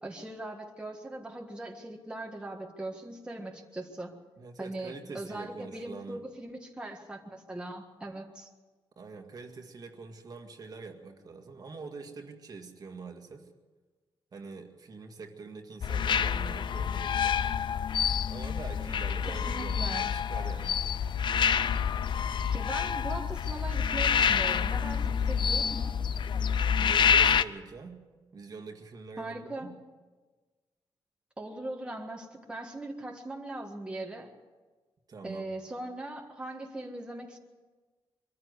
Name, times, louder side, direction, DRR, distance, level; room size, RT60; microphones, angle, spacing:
voice 1, 0.0-4.2 4.6-8.5 19.3-20.1 22.5-26.0 29.2-29.7 31.4-34.3 35.2-37.4, right 1 dB, 10° right, 1 dB, 1.7 m, -40 dB
voice 2, 4.4-6.2 9.0-13.5 14.3-17.4 18.3-20.8 26.7-28.0 28.3-29.8 35.1-35.5, right 4 dB, 40° right, 4 dB, 2.0 m, -44 dB
sound 1, 15.8-27.4, left 7 dB, 55° left, 0.6 m, -27 dB
24.0 x 14.5 x 8.2 m, 1.3 s
wide cardioid pair, 145°, 10 cm